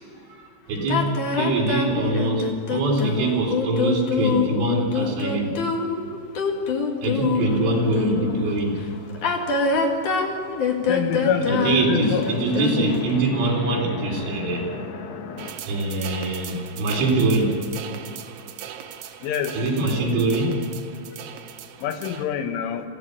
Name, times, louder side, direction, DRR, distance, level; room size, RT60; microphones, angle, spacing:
voice 1, 0.3-5.6 7.0-8.8 11.5-14.7 15.7-17.6 19.5-20.6, right 2 dB, 90° right, -2 dB, 6.3 m, -23 dB
sound 1, 0.9-8.4 9.1-13.1, left 5 dB, 50° left, 3.1 m, -25 dB
sound 2, 7.4-10.6 10.9-15.5, left 5 dB, 65° left, 3.4 m, -38 dB
voice 2, 10.9-12.3 19.2-19.5 21.8-22.8, left 8 dB, 85° left, 6 dB, 3.9 m, -26 dB
sound 3, 15.4-22.2, right 10 dB, 70° right, 2.8 m, -39 dB
24.5 x 16.5 x 8.3 m, 2.5 s
omnidirectional pair, 5.5 m